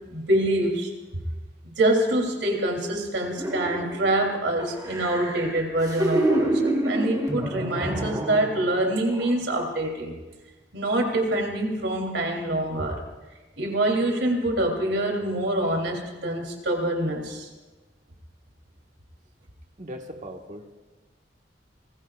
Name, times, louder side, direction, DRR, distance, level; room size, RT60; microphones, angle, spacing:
voice 1, 0.1-1.2 1.8-10.1 10.7-13.0 13.6-17.5, right 1 dB, 85° right, 1 dB, 3.3 m, -25 dB
sound 1, 3.4-4.2 4.6-8.8 9.1-9.3, right 1 dB, 20° right, 3.3 m, -27 dB
voice 2, 19.8-20.7, equal, 45° right, 3 dB, 1.6 m, -39 dB
27.0 x 20.5 x 2.5 m, 1.2 s
head